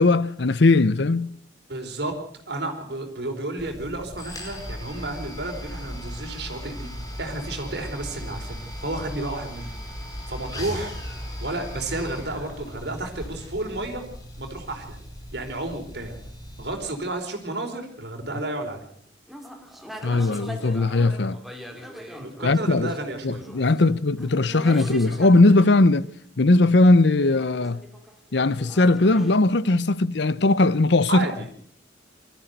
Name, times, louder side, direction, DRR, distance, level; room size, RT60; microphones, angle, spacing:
voice 1, 0.0-1.3 20.0-21.4 22.4-22.9 23.2-26.1 26.4-27.8 28.3-31.3, left 2 dB, 65° left, 0.8 m, -19 dB
voice 2, 1.7-2.2 2.5-6.9 7.2-9.7 10.3-10.9 11.4-14.0 14.4-15.0 15.3-16.2 16.6-18.8 22.2-23.4 31.1-31.5, right 2 dB, 60° right, 4.4 m, -31 dB
sound 1, 3.6-17.1, equal, 20° left, 5.4 m, -37 dB
sound 2, 19.3-25.8 27.2-29.4, equal, ahead, 2.4 m, -41 dB
23.5 x 14.0 x 8.0 m
head